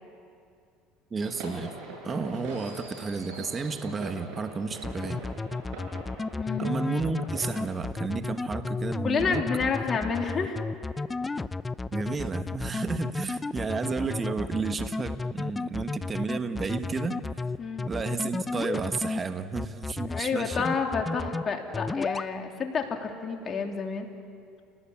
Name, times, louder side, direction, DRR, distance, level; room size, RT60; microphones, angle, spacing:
voice 1, 1.1-1.7 2.0-5.2 6.6-9.4 11.9-17.2 17.8-20.7, right 4 dB, 30° right, 9 dB, 1.4 m, -32 dB
sound 1, 1.2-7.6, right 3 dB, 65° right, 7.9 m, -42 dB
sound 2, 4.8-19.2 19.6-20.2 20.5-21.4 21.7-22.3, left 3 dB, 15° left, 0.6 m, -32 dB
voice 2, 6.4-6.8 9.0-10.6 17.6-17.8 20.0-24.1, left 5 dB, 35° left, 3 dB, 3.2 m, -29 dB
30.0 x 19.0 x 8.7 m, 2.4 s
supercardioid pair, 95°, 0 cm